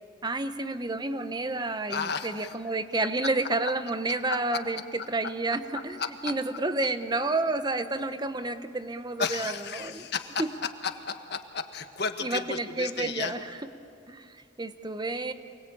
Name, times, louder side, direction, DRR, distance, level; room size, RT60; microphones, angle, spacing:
voice 1, 0.2-10.1 10.4-10.5 12.2-13.5 14.1-15.3, right 2 dB, 20° right, 10 dB, 0.9 m, -30 dB
voice 2, 1.9-2.5 4.3-4.4 6.0-6.3 9.2-10.4 11.3-13.3, left 5 dB, 55° left, 7 dB, 1.5 m, -33 dB
28.5 x 20.5 x 8.7 m, 2.5 s
head